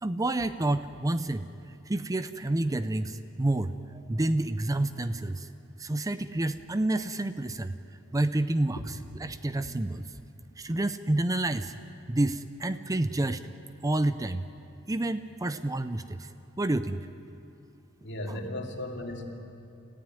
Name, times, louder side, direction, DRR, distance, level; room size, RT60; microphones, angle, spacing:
voice 1, 0.0-1.4 1.9-3.7 4.1-5.5 5.8-7.7 8.1-8.8 9.2-10.1 10.6-11.7 12.1-13.4 13.8-14.4 14.9-16.3 16.6-17.1 18.3-18.4, right 2 dB, 15° right, 12 dB, 0.5 m, -29 dB
voice 2, 18.0-19.3, left 1 dB, 60° left, 2 dB, 2.8 m, -36 dB
29.5 x 15.0 x 9.3 m, 2.7 s
head